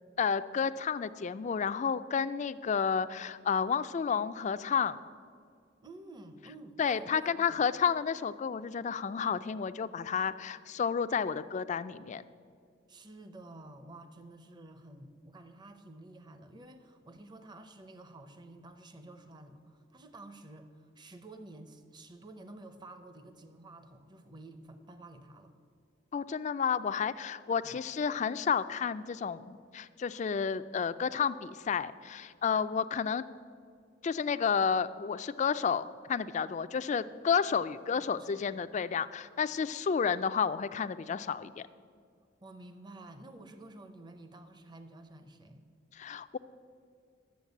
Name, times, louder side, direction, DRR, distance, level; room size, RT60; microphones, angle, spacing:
voice 1, 0.2-5.0 6.8-12.2 26.1-33.2 34.0-41.7 45.9-46.4, left 6 dB, 40° left, 13 dB, 0.3 m, -31 dB
voice 2, 5.8-7.6 12.9-25.5 27.6-27.8 32.7-32.9 37.8-38.5 42.4-45.7, right 2 dB, 25° right, 8 dB, 0.7 m, -51 dB
11.5 x 7.2 x 8.3 m, 2.2 s
head